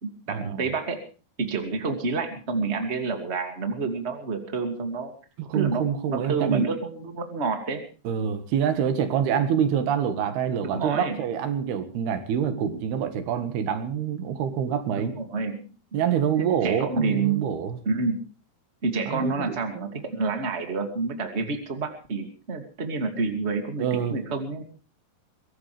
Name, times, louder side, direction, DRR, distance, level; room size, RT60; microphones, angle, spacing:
voice 1, 0.0-1.0 1.4-5.1 5.5-7.8 10.6-11.2 15.0-15.7 16.4-17.6 17.8-18.2 18.8-24.6, right 4 dB, 20° right, 5 dB, 2.2 m, -28 dB
voice 2, 5.4-6.7 8.1-15.2 15.9-17.8 19.1-19.8 23.8-24.2, right 8 dB, 80° right, 9 dB, 3.6 m, -26 dB
23.0 x 17.5 x 3.4 m, 0.35 s
omnidirectional pair, 4.5 m